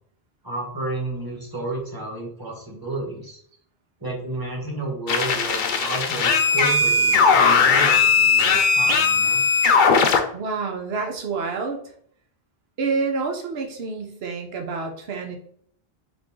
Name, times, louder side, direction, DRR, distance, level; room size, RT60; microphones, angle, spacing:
voice 1, 0.4-3.4 4.0-9.4, right 2 dB, 20° right, -2 dB, 1.4 m, -31 dB
sound 1, 5.1-10.2, left 5 dB, 55° left, 0.7 m, -18 dB
voice 2, 10.3-11.8 12.8-15.4, right 4 dB, 75° right, 3 dB, 1.1 m, -28 dB
4.1 x 3.3 x 3.7 m, 0.62 s
omnidirectional pair, 1.0 m